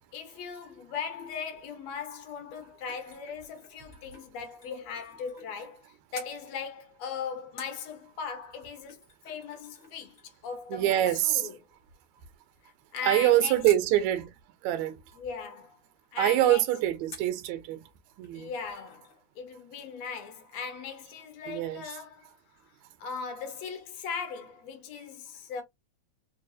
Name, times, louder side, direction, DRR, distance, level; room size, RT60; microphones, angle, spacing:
voice 1, 0.1-5.9 6.1-11.5 12.6-13.6 15.2-15.8 16.1-16.6 18.3-22.3 23.0-25.6, left 6 dB, 70° left, 1.8 m, -39 dB
sound 1, 2.3-5.8 6.1-6.4 7.6-13.9 17.1-17.4 17.9-18.0 18.2-19.2 19.5-19.6, left 2 dB, 55° left, 0.7 m, -52 dB
voice 2, 10.7-11.5 13.0-14.3 14.6-15.0 16.2-17.8 18.2-18.5 21.5-21.8, right 13 dB, 80° right, 1.8 m, -25 dB
4.6 x 2.5 x 2.5 m
omnidirectional pair, 3.4 m